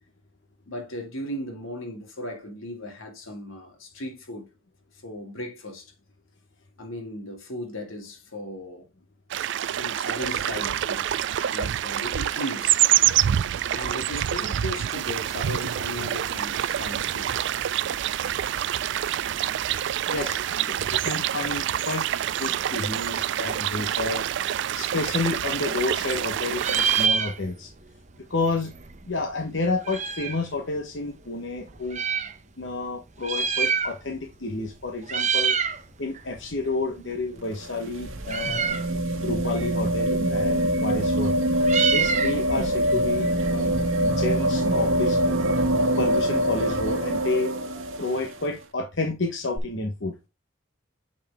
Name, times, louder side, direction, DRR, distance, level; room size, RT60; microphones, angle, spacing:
voice 1, 0.7-4.5 5.0-5.9 6.8-8.9 9.7-11.1 11.5-12.8 13.7-17.4, equal, 85° left, 2.4 m, -36 dB
sound 1, 9.3-27.1, right 11 dB, 60° right, 0.3 m, -26 dB
voice 2, 20.1-22.1 22.4-24.2 24.7-27.7 28.2-28.7 29.0-32.0 32.6-35.6 36.0-38.8 39.2-41.3 41.9-43.7 44.0-45.4 46.0-47.5 48.0-50.2, left 3 dB, 60° left, 1.1 m, -30 dB
Meow, 25.3-26.3 26.5-27.8 28.1-28.2 28.4-30.5 31.1-32.3 33.1-34.3 34.5-34.8 35.0-35.8 36.2-44.0, right 6 dB, 35° right, 0.8 m, -28 dB
sound 2, 37.4-48.4 49.6-49.7, right 1 dB, 85° right, 1.6 m, -24 dB
8.4 x 4.7 x 3.5 m
head